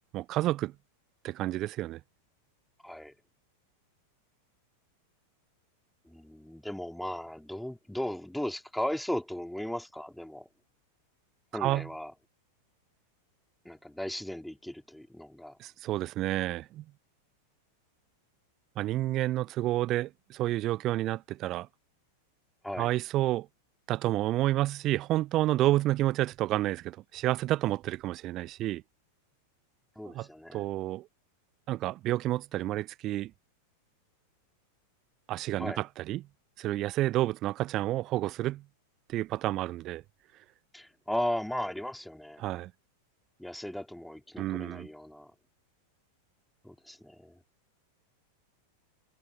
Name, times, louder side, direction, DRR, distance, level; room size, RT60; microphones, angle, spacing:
voice 1, 0.1-0.7 1.2-2.0 11.5-11.9 15.6-16.8 18.8-21.7 22.8-23.5 23.9-28.8 30.1-31.1 31.7-33.3 35.3-36.2 36.6-38.6 39.1-40.0 42.4-42.7 44.4-44.9, right 15 dB, 35° right, 0.5 m, -30 dB
voice 2, 2.8-3.1 6.1-10.5 11.5-12.1 13.7-15.6 22.6-22.9 30.0-30.7 35.6-35.8 40.7-42.4 43.4-45.3 46.6-47.4, left 1 dB, ahead, 3.6 m, -36 dB
figure-of-eight pair, 90°, 0 cm